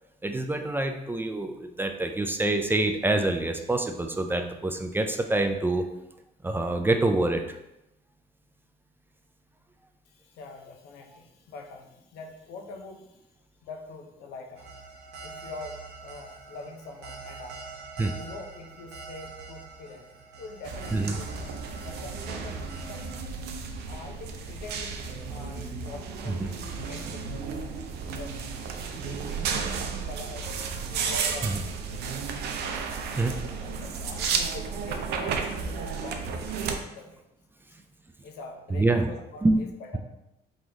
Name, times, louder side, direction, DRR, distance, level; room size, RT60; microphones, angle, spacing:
voice 1, 0.2-5.8 6.4-7.6 18.0-18.1 20.9-21.1 26.3-26.5 31.5-31.6 33.2-33.3 38.7-39.1 39.4-39.6, right 2 dB, 10° right, 5 dB, 0.3 m, -26 dB
voice 2, 10.1-13.3 13.6-14.8 15.2-17.6 18.2-20.1 20.4-21.5 21.8-23.1 23.8-28.5 29.0-30.5 30.9-32.3 33.0-37.2 38.2-40.0, left 3 dB, 85° left, 4 dB, 0.7 m, -44 dB
sound 1, 14.6-23.2, right 4 dB, 90° right, 1.0 m, -45 dB
sound 2, 20.6-36.8, right 5 dB, 70° right, 0.6 m, -33 dB
3.8 x 3.1 x 3.8 m, 0.88 s
cardioid pair, 110°, 17 cm